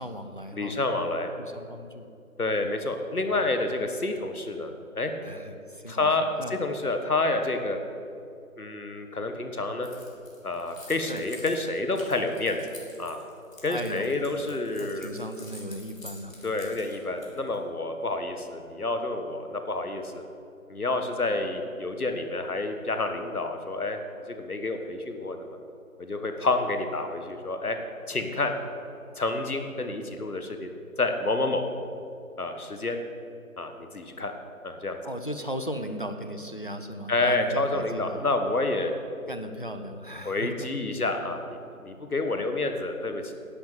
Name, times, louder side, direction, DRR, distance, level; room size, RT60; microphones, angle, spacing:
voice 1, 0.0-0.8 1.4-2.1 3.1-3.4 5.2-6.6 11.1-11.2 13.7-14.5 14.8-16.4 35.0-38.3 39.3-40.7, equal, 35° left, 7 dB, 0.6 m, -37 dB
voice 2, 0.5-1.3 2.4-4.7 4.9-5.1 5.9-7.8 8.6-9.9 10.4-12.6 13.0-13.2 13.6-15.1 16.4-20.2 20.7-24.0 24.3-25.5 26.0-27.8 28.1-28.5 29.2-30.7 31.0-31.6 32.4-33.0 33.6-34.3 34.6-35.0 37.1-39.0 40.2-43.4, left 2 dB, 80° left, 6 dB, 1.6 m, -29 dB
Keys jangling, 9.8-17.6, left 2 dB, 65° left, 3.3 m, -48 dB
10.5 x 8.0 x 7.7 m, 2.6 s
figure-of-eight pair, 165°, 43 cm